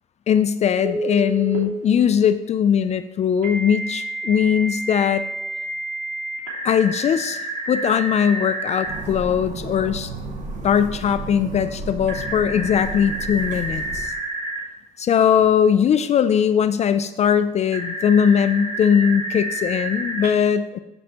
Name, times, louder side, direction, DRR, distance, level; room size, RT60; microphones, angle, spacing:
voice 1, 0.3-5.2 6.6-7.4 7.7-10.1 10.6-14.1 15.0-20.8, left 8 dB, 40° left, 11 dB, 0.4 m, -20 dB
Telephone, 0.8-1.6 3.4-9.0 12.1-14.6 17.7-20.3, right 1 dB, 70° right, 3.2 m, -29 dB
sound 1, 8.8-14.0, right 2 dB, 45° right, 1.5 m, -33 dB
14.5 x 5.2 x 3.0 m, 1.0 s
cardioid pair, 110°, 17 cm